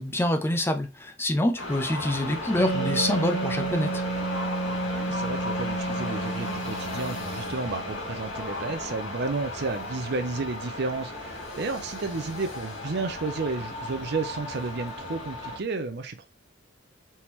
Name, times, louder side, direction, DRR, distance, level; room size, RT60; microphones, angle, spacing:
voice 1, 0.0-4.0, left 1 dB, 10° left, 0.5 m, -26 dB
sound 1, 1.6-15.6, left 2 dB, 70° left, 1.7 m, -35 dB
Wind instrument woodwind instrument, 2.6-8.0, right 2 dB, 45° left, 1.3 m, -31 dB
voice 2, 4.8-16.3, right 3 dB, 55° right, 0.6 m, -32 dB
4.3 x 3.6 x 3.0 m
head